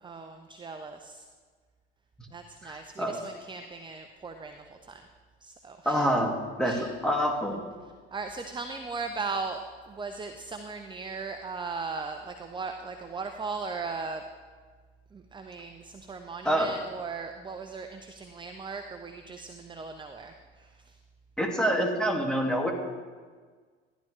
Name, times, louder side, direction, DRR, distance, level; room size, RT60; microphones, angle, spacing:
voice 1, 0.0-1.2 2.3-5.0 5.4-6.1 6.6-6.9 8.1-14.2 15.1-21.0, right 4 dB, 15° right, 6 dB, 0.8 m, -38 dB
voice 2, 2.6-3.2 5.9-7.6 16.4-16.7 21.4-22.7, equal, ahead, 1 dB, 2.3 m, -27 dB
14.5 x 11.0 x 3.3 m, 1.5 s
hypercardioid pair, 65°, 31 cm